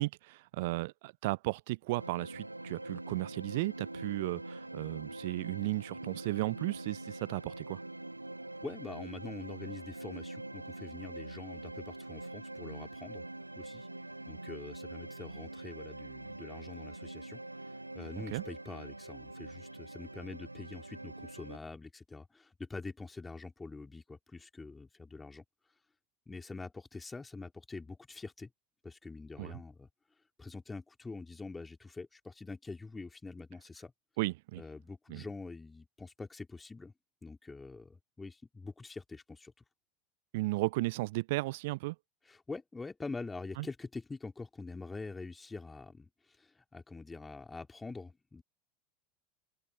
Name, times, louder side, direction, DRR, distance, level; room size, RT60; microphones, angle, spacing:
voice 1, 0.0-7.8 18.2-18.4 29.4-29.5 34.2-34.6 35.1-35.2 40.3-41.9 43.6-43.7, right 21 dB, 55° right, 0.7 m, -35 dB
sound 1, 2.0-21.6, right 2 dB, 85° right, 1.7 m, -44 dB
voice 2, 8.6-13.2 13.6-13.9 14.3-17.4 17.9-25.4 26.3-28.5 28.8-29.9 30.4-33.9 34.6-36.9 37.2-39.5 42.3-46.1 46.4-48.4, left 3 dB, 15° left, 4.0 m, -45 dB
open air
figure-of-eight pair, 80°, 0 cm